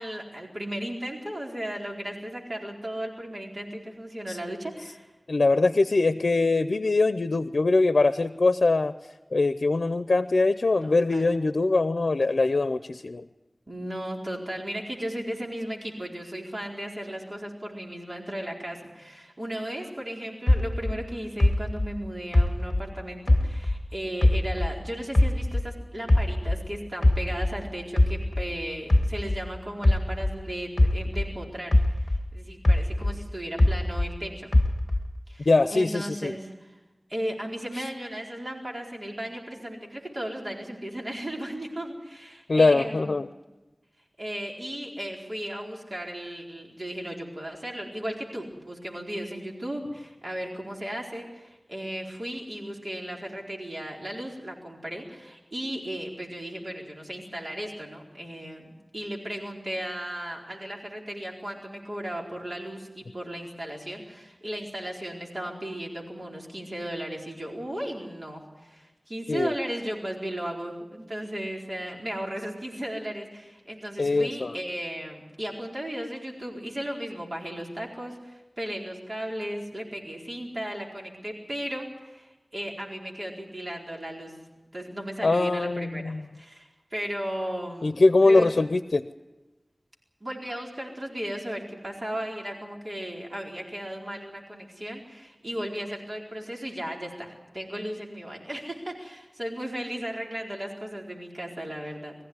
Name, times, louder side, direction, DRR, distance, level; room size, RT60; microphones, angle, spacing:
voice 1, 0.0-5.1 10.8-11.3 13.7-34.5 35.3-36.8 37.1-43.2 44.2-84.3 84.7-88.5 90.2-102.1, equal, 45° right, -1 dB, 4.4 m, -36 dB
voice 2, 5.3-9.0 9.3-13.3 35.5-36.3 37.7-37.8 42.5-43.3 69.3-69.5 74.0-74.5 85.2-86.2 87.8-89.1, left 3 dB, 85° left, 11 dB, 0.6 m, -22 dB
sound 1, 20.5-23.9 24.2-26.7 27.0-31.4 31.7-34.2 34.5-35.2, left 1 dB, 35° left, 1.5 m, -23 dB
23.0 x 15.0 x 9.6 m, 1.1 s
wide cardioid pair, 55°, 0 cm